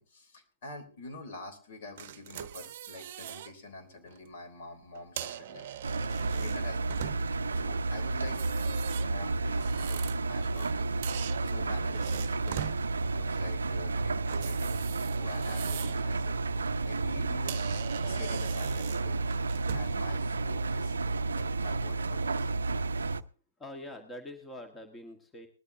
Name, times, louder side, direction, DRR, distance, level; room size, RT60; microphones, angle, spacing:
voice 1, 0.0-8.4 9.0-12.7 13.0-16.4 16.8-17.7 18.0-19.2 19.7-20.9 21.3-22.8, left 2 dB, 55° left, 6 dB, 3.4 m, -47 dB
sound 1, 2.0-3.5 3.9-4.2 4.9-7.5 8.2-10.7 11.0-12.8 14.3-16.1 16.5-16.7 17.2-17.3 17.5-20.0, right 10 dB, 50° right, 0.8 m, -41 dB
Engine, 5.8-23.2, right 3 dB, 75° right, 0.6 m, -31 dB
voice 2, 23.6-25.5, left 1 dB, 15° left, 4 dB, 1.6 m, -44 dB
20.0 x 12.5 x 2.7 m, 0.39 s
figure-of-eight pair, 110°, 0 cm